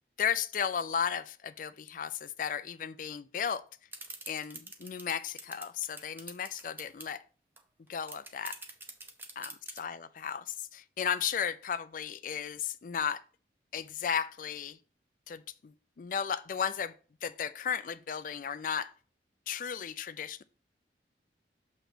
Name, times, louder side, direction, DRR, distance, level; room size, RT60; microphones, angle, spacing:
voice 1, 0.2-3.6 4.3-7.2 7.9-8.6 9.4-9.5 9.8-13.2 13.7-14.8 15.3-16.9 17.2-18.9 19.5-20.4, left 7 dB, 50° left, 0.4 m, -34 dB
sound 1, 3.9-7.1 7.6-7.7 7.9-9.8, right 2 dB, 10° right, 0.6 m, -44 dB
6.6 x 3.0 x 5.9 m
head